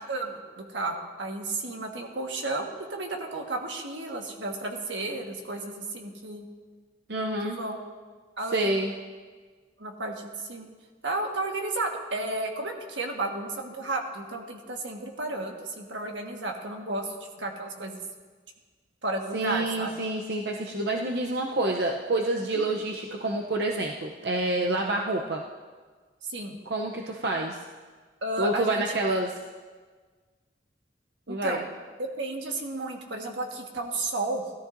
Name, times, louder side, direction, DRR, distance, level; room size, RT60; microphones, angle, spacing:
voice 1, 0.1-6.5 7.4-7.8 8.4-8.8 9.8-10.7 11.0-18.0 19.0-19.9 22.5-22.7 26.2-26.6 28.2-29.2 31.3-31.6 32.0-34.4, right 2 dB, 85° right, 2 dB, 1.5 m, -33 dB
voice 2, 7.1-7.6 8.5-8.9 19.3-25.4 26.7-27.6 28.4-29.3 31.3-31.6, right 2 dB, 60° right, 1 dB, 0.7 m, -28 dB
17.0 x 13.0 x 2.6 m, 1.5 s
head